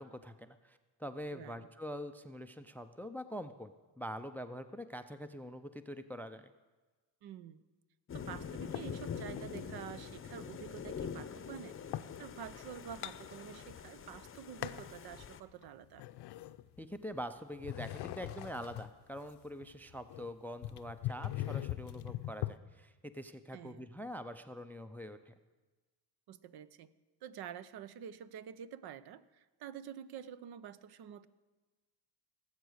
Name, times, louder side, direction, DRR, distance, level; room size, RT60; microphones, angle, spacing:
voice 1, 0.0-6.5 16.8-25.3, equal, 5° left, 11 dB, 0.4 m, -44 dB
voice 2, 1.3-1.7 7.2-7.6 8.1-11.8 12.2-16.0 23.5-23.9 26.3-26.9 27.2-31.3, right 9 dB, 60° right, 15 dB, 0.7 m, -48 dB
sound 1, 8.1-15.4, left 7 dB, 30° left, 0.7 m, -45 dB
sound 2, 8.7-9.7 10.2-12.2 12.6-13.9 14.2-15.0 15.5-17.2 17.6-22.6, left 15 dB, 65° left, 0.6 m, -42 dB
18.5 x 8.2 x 6.4 m, 1.3 s
cardioid pair, 110°, 43 cm